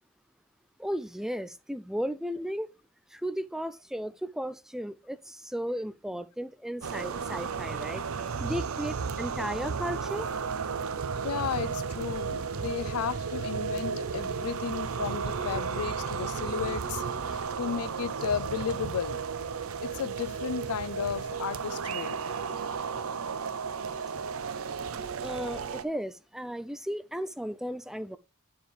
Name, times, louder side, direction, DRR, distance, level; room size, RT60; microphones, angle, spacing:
voice 1, 0.8-2.7 3.1-8.0 8.4-10.3 25.2-28.2, equal, ahead, 0.3 m, -35 dB
sound 1, 6.8-25.8, right 5 dB, 75° right, 0.6 m, -33 dB
voice 2, 11.2-19.2 19.8-22.2, left 7 dB, 90° left, 0.4 m, -34 dB
10.0 x 4.4 x 3.2 m
head